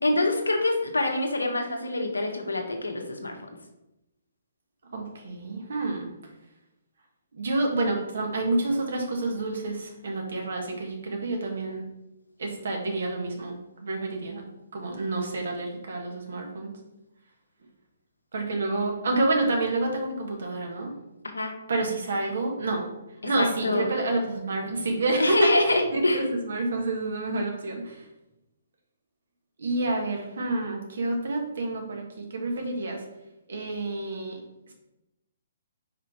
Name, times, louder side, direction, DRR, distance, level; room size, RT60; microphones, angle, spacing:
voice 1, 0.0-3.4 21.2-21.5 23.2-23.9 25.2-26.2, left 2 dB, 85° left, 4 dB, 1.1 m, -25 dB
voice 2, 4.9-6.1 7.3-11.8 12.4-13.5 13.8-16.8 18.3-20.9 21.7-22.9 23.2-28.0 29.6-33.0 33.5-34.4, right 2 dB, 65° right, 1 dB, 1.6 m, -28 dB
5.1 x 4.9 x 4.4 m, 0.93 s
figure-of-eight pair, 130°, 0 cm